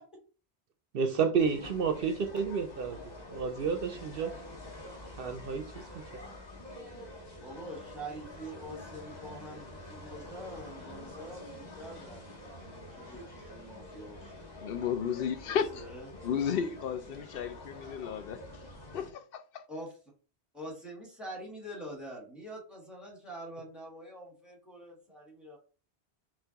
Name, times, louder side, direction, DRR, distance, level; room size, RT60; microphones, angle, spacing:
voice 1, 0.9-3.0 3.3-4.3 5.2-5.8, right 6 dB, 65° right, 0.7 m, -30 dB
sound 1, 1.4-19.1, left 1 dB, 40° left, 1.4 m, -47 dB
voice 2, 7.4-14.5 15.4-16.1 19.7-20.0 20.5-25.6, right 1 dB, ahead, 1.6 m, -45 dB
voice 3, 14.6-15.8 16.2-18.4 18.9-19.6, left 7 dB, 65° left, 0.8 m, -33 dB
5.5 x 2.5 x 2.9 m
omnidirectional pair, 1.1 m